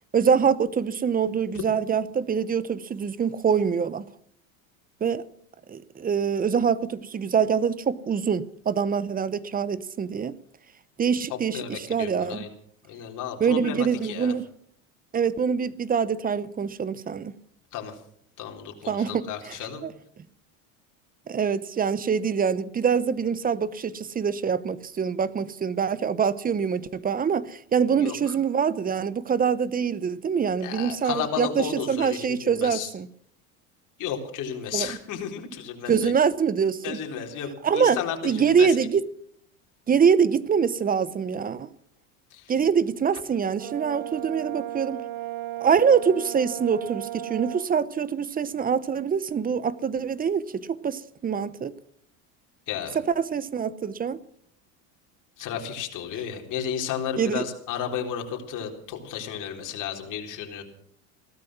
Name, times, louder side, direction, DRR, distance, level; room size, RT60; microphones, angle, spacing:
voice 1, 0.1-4.0 5.0-5.2 5.7-10.4 11.0-12.5 13.4-14.5 15.1-17.3 18.9-19.9 21.3-33.1 34.7-34.9 35.9-37.0 37.6-39.0 39.9-41.7 42.5-45.0 45.6-51.7 52.9-54.2 57.2-57.5, right 6 dB, 20° right, 0.8 m, -24 dB
voice 2, 11.5-12.5 12.9-14.3 17.7-17.9 18.4-19.8 28.0-28.4 30.6-32.9 34.0-36.1 36.8-38.8 42.3-42.4 52.7-53.0 55.4-60.6, left 8 dB, 50° left, 3.9 m, -33 dB
Brass instrument, 43.6-47.7, right 14 dB, 70° right, 1.0 m, -35 dB
16.5 x 13.0 x 6.1 m
supercardioid pair, 110°, 38 cm